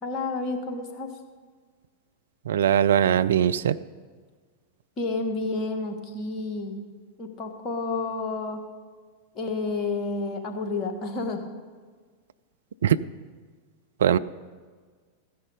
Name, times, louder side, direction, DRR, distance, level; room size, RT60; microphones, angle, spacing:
voice 1, 0.0-1.1 5.0-6.8 7.2-8.6 9.3-11.4, left 3 dB, 30° left, 4 dB, 1.7 m, -30 dB
voice 2, 2.5-3.8 12.8-13.0 14.0-14.2, right 9 dB, 65° right, 13 dB, 0.4 m, -20 dB
15.0 x 10.0 x 5.3 m, 1.5 s
figure-of-eight pair, 90°, 0 cm